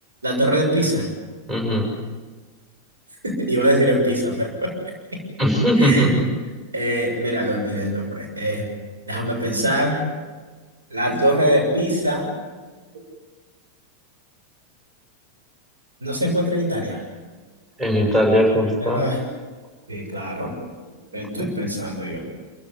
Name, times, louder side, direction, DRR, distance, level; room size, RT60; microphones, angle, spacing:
voice 1, 0.2-1.0 3.2-4.7 5.8-6.1 6.7-8.6 9.1-10.0 10.9-12.2 16.0-17.0 18.8-19.2 19.9-20.5 21.1-22.3, equal, 75° right, 0 dB, 6.8 m, -22 dB
voice 2, 1.5-1.8 5.4-6.2 17.8-19.0 21.4-21.5, equal, 20° right, 1 dB, 6.8 m, -19 dB
27.0 x 16.5 x 9.8 m, 1.4 s
figure-of-eight pair, 90°, 0 cm